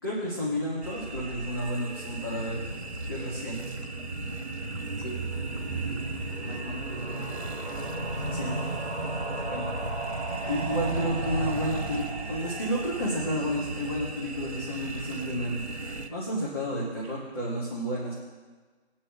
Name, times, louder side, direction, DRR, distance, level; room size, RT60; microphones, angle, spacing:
voice 1, 0.0-2.6 3.1-3.6 8.3-8.6 9.4-9.6 10.5-15.7 16.1-18.1, equal, 20° left, -7 dB, 2.1 m, -31 dB
sound 1, 0.8-16.1, right 2 dB, 75° right, 1.5 m, -38 dB
sound 2, 1.9-14.8 15.1-15.2 15.4-15.5 15.7-15.8, right 2 dB, 15° right, 1.8 m, -35 dB
voice 2, 3.1-3.5 5.0-5.5 5.9-6.0 6.4-7.6 9.0-9.1, equal, 60° left, 1 dB, 2.8 m, -44 dB
22.0 x 10.0 x 2.4 m, 1.4 s
figure-of-eight pair, 165°, 33 cm